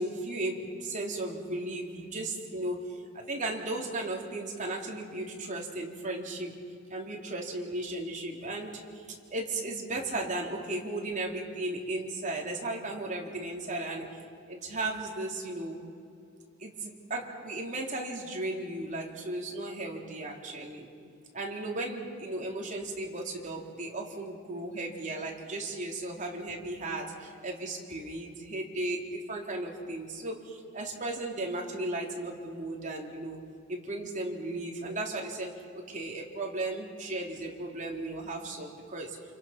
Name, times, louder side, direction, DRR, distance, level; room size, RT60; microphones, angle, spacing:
voice 1, 0.0-3.0 3.3-6.5 6.9-9.0 9.3-14.1 14.5-15.8 16.6-20.9 21.3-33.4 33.7-39.2, right 2 dB, 35° right, -1 dB, 3.4 m, -35 dB
29.0 x 27.5 x 5.9 m, 2.4 s
head